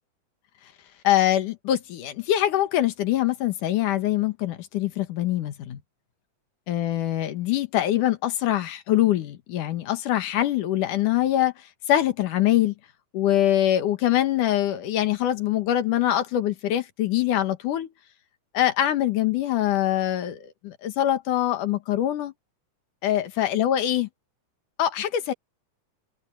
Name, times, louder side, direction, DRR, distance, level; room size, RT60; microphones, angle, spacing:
voice 1, 1.0-5.8 6.7-11.5 11.9-12.7 13.1-17.9 18.5-22.3 23.0-24.1 24.8-25.3, left 12 dB, 80° left, 2.9 m, -23 dB
open air
omnidirectional pair, 3.6 m